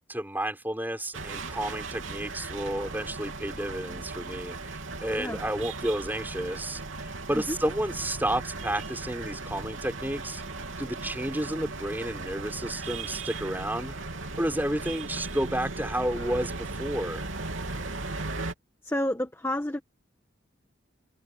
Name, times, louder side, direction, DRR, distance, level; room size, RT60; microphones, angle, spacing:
voice 1, 0.1-10.4 10.8-13.9 14.4-17.3, right 1 dB, 10° right, 4.7 m, -31 dB
sound 1, 1.1-18.5, right 3 dB, 80° right, 3.4 m, -37 dB
voice 2, 18.8-19.8, left 1 dB, 10° left, 1.4 m, -30 dB
head